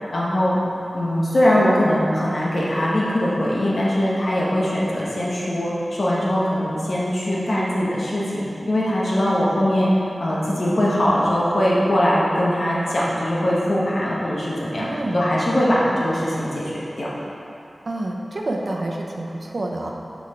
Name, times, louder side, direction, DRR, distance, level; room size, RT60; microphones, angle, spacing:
voice 1, 0.1-0.6 0.9-9.9 10.2-14.9 15.1-16.7 17.0-17.1, equal, 65° left, -6 dB, 1.3 m, -21 dB
voice 2, 14.8-15.2 17.9-19.9, right 2 dB, 65° right, 0 dB, 0.8 m, -28 dB
6.2 x 5.9 x 4.4 m, 2.8 s
wide cardioid pair, 70°, 0 cm